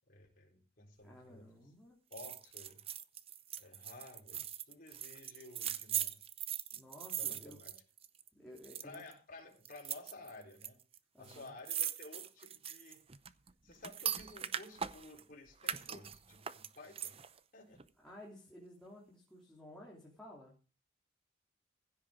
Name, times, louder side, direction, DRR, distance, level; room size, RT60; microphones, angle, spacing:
voice 1, 0.1-1.5 2.1-3.0 3.6-6.3 7.1-7.8 8.8-10.8 11.2-13.0 13.6-17.2 17.5-17.8, left 2 dB, 45° left, 1 dB, 4.2 m, -54 dB
voice 2, 1.0-2.0 6.7-7.6 8.3-9.0 11.1-11.5 18.0-20.6, left 1 dB, 5° left, -4 dB, 3.3 m, -54 dB
sound 1, 2.1-8.3 8.6-9.1 9.7-10.7 10.9-11.0 11.2-15.2 15.6-17.4 17.8-17.9, right 9 dB, 30° right, 0.7 m, -40 dB
16.0 x 8.1 x 5.0 m, 0.33 s
head